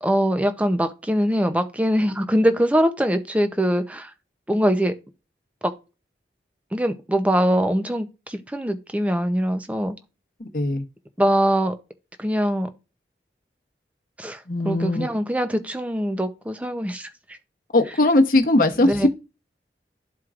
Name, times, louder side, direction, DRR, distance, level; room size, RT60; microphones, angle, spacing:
voice 1, 0.0-4.1 4.5-4.9 5.6-5.7 6.7-9.9 11.2-11.7 12.2-12.7 14.2-17.1 18.8-19.1, equal, 10° right, 0.5 m, -22 dB
voice 2, 10.4-10.8 14.5-15.1 17.7-19.1, left 2 dB, 50° left, 0.9 m, -19 dB
12.5 x 4.5 x 2.5 m
head